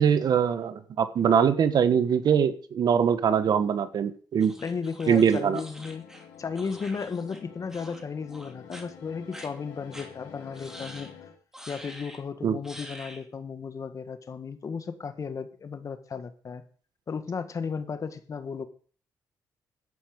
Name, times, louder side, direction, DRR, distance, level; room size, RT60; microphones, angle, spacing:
voice 1, 0.0-4.5 5.1-5.6 12.4-12.6, right 7 dB, 60° right, 12 dB, 1.2 m, -22 dB
sound 1, 4.4-7.4 7.7-8.0 8.3-8.8 9.3-9.5 9.9-10.1 10.5-11.1 11.5-12.2 12.6-13.2, equal, 5° right, 2.9 m, -46 dB
voice 2, 4.6-6.1 6.4-11.3 11.7-16.6 17.1-18.7, left 5 dB, 45° left, 10 dB, 1.6 m, -34 dB
sound 2, 5.0-11.4, left 8 dB, 90° left, 2.4 m, -48 dB
11.5 x 8.1 x 5.2 m, 0.42 s
supercardioid pair, 65°, 8 cm